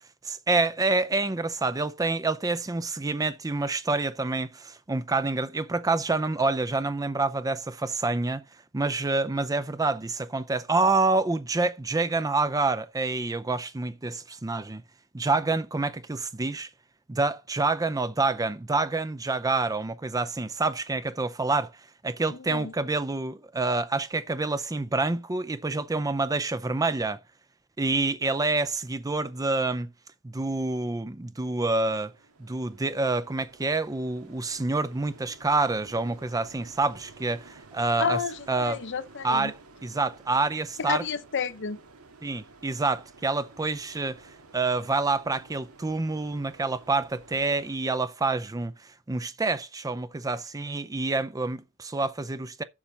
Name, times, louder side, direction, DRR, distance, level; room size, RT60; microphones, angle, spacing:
voice 1, 0.2-8.4 8.7-14.8 15.1-16.7 17.1-21.7 22.0-27.2 27.8-29.9 30.2-32.1 32.4-38.2 38.5-38.8 39.2-41.0 42.2-44.2 44.5-48.7 49.1-52.6, right 3 dB, 15° right, 0.5 m, -27 dB
sound 1, 31.9-47.8, right 3 dB, 85° right, 1.8 m, -52 dB
voice 2, 38.0-39.5 40.8-41.8, left 6 dB, 55° left, 0.7 m, -30 dB
7.2 x 7.1 x 5.4 m
head